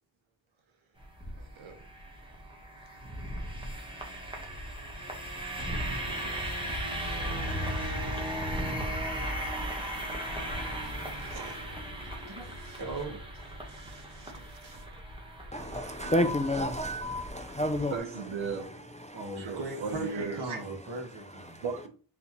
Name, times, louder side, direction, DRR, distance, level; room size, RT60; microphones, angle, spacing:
sound 1, 1.0-18.0, right 1 dB, 10° right, 1.1 m, -36 dB
voice 1, 1.3-1.9 5.9-7.8 8.1-8.2 10.6-12.4 12.6-12.8 13.7-14.9 17.9-18.9 19.4-20.8 21.6-21.9, right 5 dB, 90° right, 1.0 m, -40 dB
voice 2, 12.8-13.2 14.3-14.4 15.6-16.3 19.1-21.6, right 2 dB, 55° right, 1.4 m, -39 dB
voice 3, 15.5-18.0 19.1-19.2 21.5-21.6, left 1 dB, 20° left, 0.3 m, -30 dB
4.1 x 3.6 x 2.9 m
wide cardioid pair, 90°, 46 cm